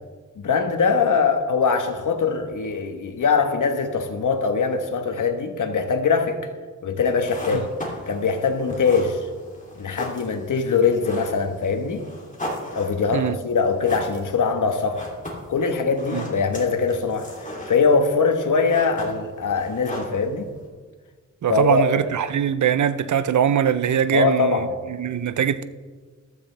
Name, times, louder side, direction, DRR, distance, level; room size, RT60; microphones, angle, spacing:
voice 1, 0.4-6.4 6.8-7.7 8.1-9.3 9.8-12.0 12.7-15.0 15.5-20.5 21.5-21.8 24.1-24.7, left 5 dB, 80° left, 1.3 m, -22 dB
sound 1, 7.1-20.7, left 1 dB, 25° left, 2.9 m, -37 dB
voice 2, 21.4-25.6, right 8 dB, 70° right, 0.6 m, -22 dB
14.5 x 12.5 x 3.4 m
wide cardioid pair, 120°, 30 cm